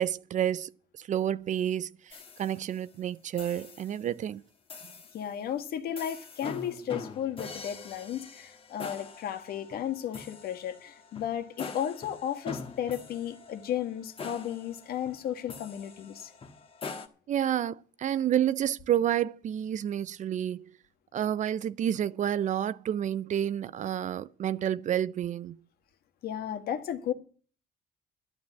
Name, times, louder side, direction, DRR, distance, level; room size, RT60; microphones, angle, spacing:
voice 1, 0.0-4.4 17.3-20.7 21.1-25.6, right 10 dB, 45° right, 0.5 m, -30 dB
sound 1, 2.1-2.9 3.4-4.0 4.7-5.3 6.0-17.1, left 4 dB, 35° left, 1.4 m, -44 dB
voice 2, 5.1-16.3 26.2-27.1, left 10 dB, 65° left, 1.5 m, -34 dB
11.5 x 9.4 x 7.4 m
cardioid pair, 110°, 17 cm